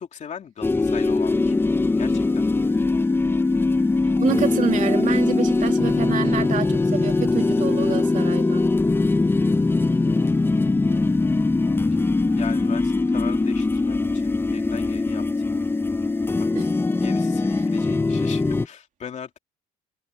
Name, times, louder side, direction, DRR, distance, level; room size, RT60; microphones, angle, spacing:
voice 1, 0.0-1.5 2.0-2.5 12.3-15.6 16.4-16.7 17.0-19.4, left 7 dB, 45° left, 2.9 m, -38 dB
sound 1, 0.6-18.7, left 3 dB, 15° left, 0.6 m, -21 dB
voice 2, 4.2-8.7 16.5-16.7, right 8 dB, 50° right, 2.5 m, -27 dB
cardioid pair, 110°, 17 cm